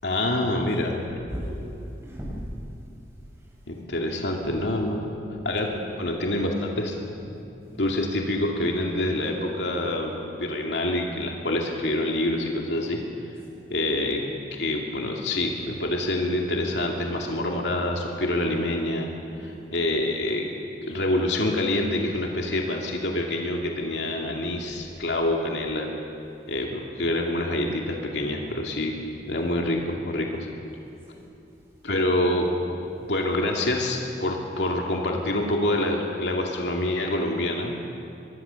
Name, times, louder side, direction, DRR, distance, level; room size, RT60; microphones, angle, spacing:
voice 1, 0.0-1.0 3.7-5.1 5.4-5.7 6.0-6.9 7.2-7.3 7.7-13.0 13.7-14.2 14.5-19.1 19.4-20.6 20.8-25.9 26.5-29.0 29.3-30.5 31.8-32.5 33.1-37.8, left 1 dB, 85° left, 1 dB, 2.5 m, -26 dB
voice 2, 1.3-1.6 2.0-2.4 2.8-3.5 4.0-4.1 5.6-5.8 7.7-7.9 13.5-13.8 19.1-19.5 31.1-31.4, equal, 15° right, -5 dB, 7.7 m, -40 dB
24.0 x 22.0 x 7.0 m, 2.7 s
head